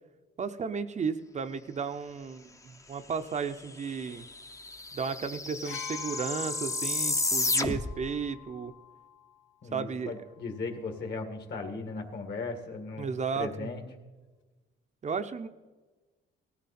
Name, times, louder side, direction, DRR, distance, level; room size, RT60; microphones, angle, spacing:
voice 1, 0.4-4.3 4.9-8.7 9.7-10.1 13.0-13.7 15.0-15.5, right 5 dB, 35° right, 8 dB, 0.6 m, -34 dB
sound 1, 3.6-3.7 3.9-8.1, left 2 dB, 15° left, 0.7 m, -32 dB
sound 2, 5.6-9.4 10.5-10.6, left 9 dB, 75° left, 1.0 m, -45 dB
voice 2, 9.6-13.8, left 3 dB, 55° left, 4 dB, 2.0 m, -37 dB
18.5 x 13.5 x 4.3 m, 1.3 s
cardioid pair, 125°, 21 cm